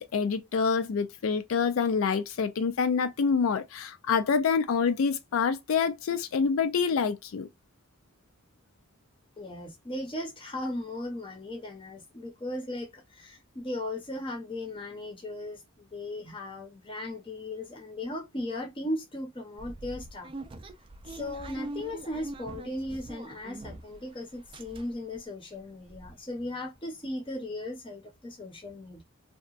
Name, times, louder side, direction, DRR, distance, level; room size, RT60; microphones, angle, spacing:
voice 1, 0.0-7.5, left 5 dB, 85° left, 0.4 m, -27 dB
voice 2, 9.4-20.3 21.1-29.0, left 1 dB, 25° left, 0.7 m, -37 dB
sound 1, 19.6-24.1 24.3-25.2 25.6-25.7 25.9-26.1, right 2 dB, 25° right, 0.3 m, -43 dB
2.8 x 2.2 x 2.4 m
head